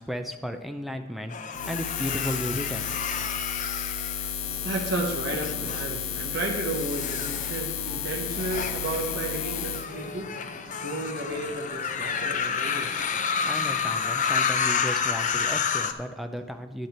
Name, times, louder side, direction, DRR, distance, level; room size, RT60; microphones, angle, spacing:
voice 1, 0.0-3.3 13.4-16.9, equal, ahead, 6 dB, 0.6 m, -34 dB
sound 1, 1.3-4.7 5.3-5.8 6.5-15.9, left 6 dB, 40° left, 0.6 m, -30 dB
Buzz, 1.5-9.9, left 8 dB, 75° left, 0.8 m, -32 dB
voice 2, 4.3-14.1, right 2 dB, 55° right, -1 dB, 1.2 m, -33 dB
9.9 x 9.4 x 4.4 m, 1.2 s
head